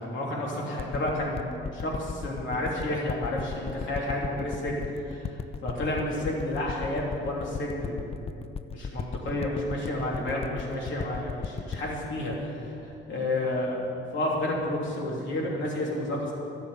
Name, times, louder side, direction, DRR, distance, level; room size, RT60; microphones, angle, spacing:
voice 1, 0.0-4.7 5.0-8.1 8.7-13.8 14.1-16.3, left 1 dB, 70° left, -3 dB, 3.1 m, -31 dB
sound 1, 0.8-13.5 14.1-14.2, left 6 dB, 30° left, 0.5 m, -36 dB
13.0 x 7.0 x 9.5 m, 2.8 s
cardioid pair, 90°, 20 cm